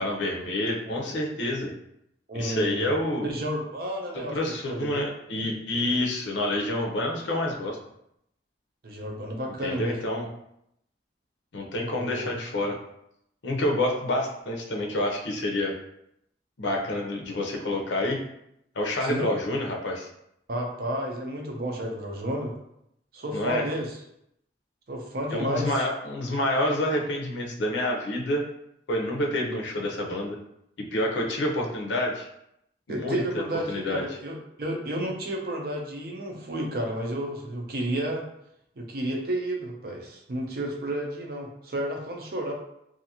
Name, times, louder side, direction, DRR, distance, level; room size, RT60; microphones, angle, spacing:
voice 1, 0.0-1.7 2.4-3.3 4.1-7.8 9.6-10.3 11.5-12.7 13.4-15.7 16.6-18.2 18.7-20.1 23.3-23.7 25.3-28.4 28.9-30.4 30.9-32.3 32.9-34.0, left 1 dB, 90° left, 0 dB, 0.6 m, -28 dB
voice 2, 0.9-1.2 2.3-2.9 3.2-4.9 5.4-5.5 8.8-10.0 11.9-12.3 19.0-19.3 20.5-22.5 23.1-24.0 24.9-25.8 32.9-38.2 38.8-42.5, right 1 dB, 55° right, 1 dB, 0.5 m, -31 dB
2.6 x 2.4 x 2.8 m, 0.77 s
head